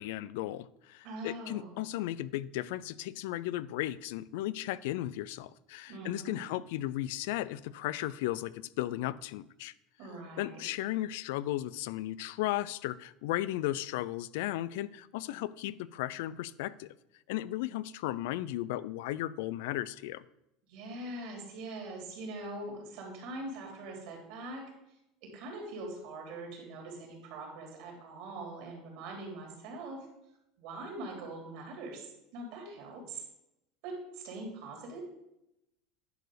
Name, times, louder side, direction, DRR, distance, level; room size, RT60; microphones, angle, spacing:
voice 1, 0.0-9.7 10.4-16.9 17.3-20.2, left 15 dB, 75° left, 0.4 m, -35 dB
voice 2, 1.0-1.7 5.9-6.4 10.0-10.6 20.7-24.6 25.2-30.1 30.6-33.2 33.8-35.0, right 2 dB, 65° right, 3.4 m, -42 dB
10.5 x 4.6 x 5.0 m
supercardioid pair, 135°, 0 cm